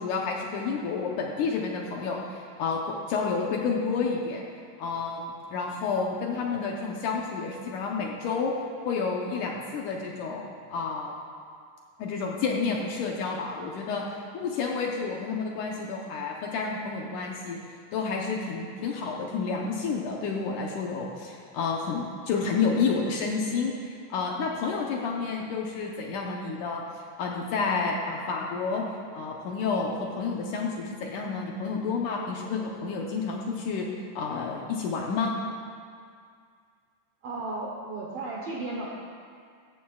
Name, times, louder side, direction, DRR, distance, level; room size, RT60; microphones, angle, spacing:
voice 1, 0.0-4.4 4.8-8.5 8.9-11.1 12.0-14.0 14.3-17.6 17.9-26.8 27.2-28.9 29.1-33.9 34.2-35.4, left 4 dB, 70° left, -1 dB, 2.1 m, -30 dB
voice 2, 37.2-38.9, right 2 dB, 70° right, -3 dB, 1.5 m, -34 dB
15.0 x 14.5 x 2.4 m, 2.2 s
omnidirectional pair, 4.3 m